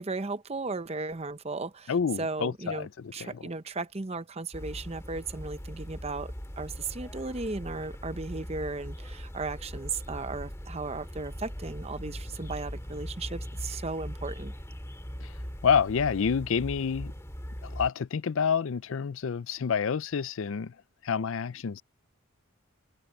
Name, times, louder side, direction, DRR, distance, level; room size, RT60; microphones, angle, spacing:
voice 1, 0.0-14.5, right 3 dB, 30° right, 0.7 m, -36 dB
voice 2, 1.9-3.5 15.2-15.3 15.6-17.1 17.6-20.7 21.0-21.8, left 6 dB, 60° left, 0.4 m, -28 dB
sound 1, 4.5-17.9, equal, 15° left, 2.2 m, -40 dB
head